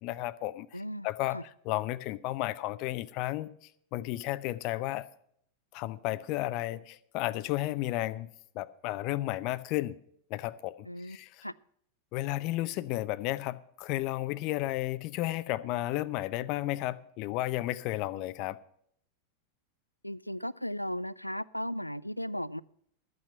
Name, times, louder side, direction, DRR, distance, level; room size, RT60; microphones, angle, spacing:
voice 1, 0.0-3.5 3.9-5.0 5.7-8.3 8.5-10.0 10.3-10.7 11.0-11.4 12.1-18.6, left 16 dB, 40° left, 0.7 m, -33 dB
voice 2, 0.7-1.1 1.3-1.4 10.9-11.2 11.4-11.5 20.0-22.6, equal, 90° left, 0.4 m, -36 dB
13.5 x 8.8 x 5.5 m
figure-of-eight pair, 90°, 0 cm